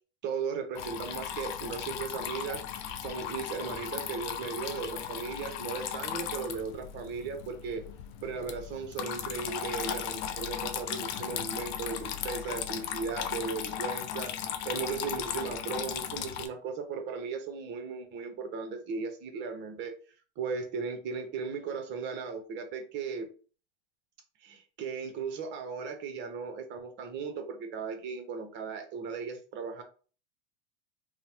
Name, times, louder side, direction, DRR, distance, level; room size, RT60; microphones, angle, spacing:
voice 1, 0.2-7.8 8.2-19.9 20.4-23.3 24.4-29.8, right 5 dB, 35° right, 6 dB, 0.7 m, -37 dB
Water tap faucet / Trickle dribble, 0.7-16.5, left 9 dB, 50° left, 0.5 m, -37 dB
2.9 x 2.0 x 2.8 m, 0.38 s
hypercardioid pair, 115°, 30 cm